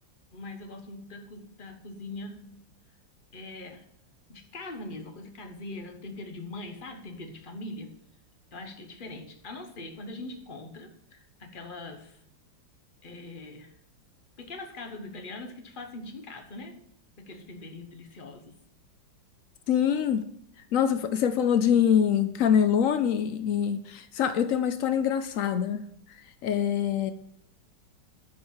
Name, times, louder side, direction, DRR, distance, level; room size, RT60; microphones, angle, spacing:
voice 1, 0.3-2.6 3.3-3.9 4.3-8.0 8.5-12.2 13.0-13.7 14.4-16.8 17.2-18.5, left 2 dB, 35° left, 6 dB, 1.0 m, -42 dB
voice 2, 19.7-20.3 20.7-25.8 26.4-27.1, left 8 dB, 90° left, 11 dB, 0.7 m, -24 dB
11.0 x 5.0 x 7.2 m, 0.74 s
omnidirectional pair, 2.1 m